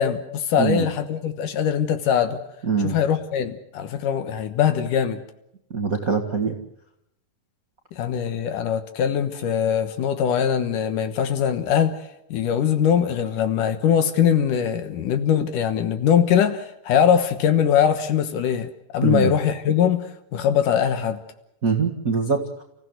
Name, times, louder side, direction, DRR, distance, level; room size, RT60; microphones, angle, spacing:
voice 1, 0.0-2.4 2.8-5.2 7.9-12.0 12.3-21.2, left 8 dB, 65° left, 2.6 m, -22 dB
voice 2, 2.6-3.0 5.7-6.5 19.0-19.3 21.6-22.6, right 5 dB, 35° right, 1.3 m, -23 dB
30.0 x 15.5 x 8.0 m
omnidirectional pair, 4.3 m